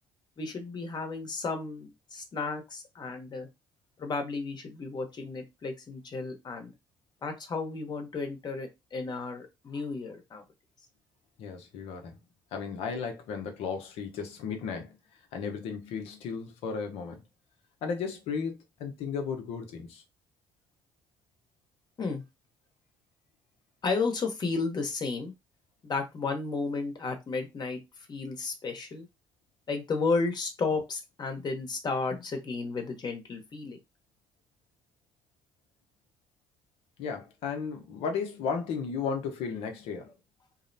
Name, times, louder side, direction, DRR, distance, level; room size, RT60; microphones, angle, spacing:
voice 1, 0.4-3.5 4.0-6.7 7.2-10.4 22.0-22.2 23.8-25.3 25.8-27.8 28.1-29.1 29.7-33.8, left 4 dB, 45° left, 0.9 m, -33 dB
voice 2, 11.4-12.2 12.5-15.0 15.3-17.2 17.8-20.0 37.0-40.1, left 6 dB, 75° left, 0.7 m, -34 dB
2.7 x 2.0 x 2.6 m
supercardioid pair, 60°, 10 cm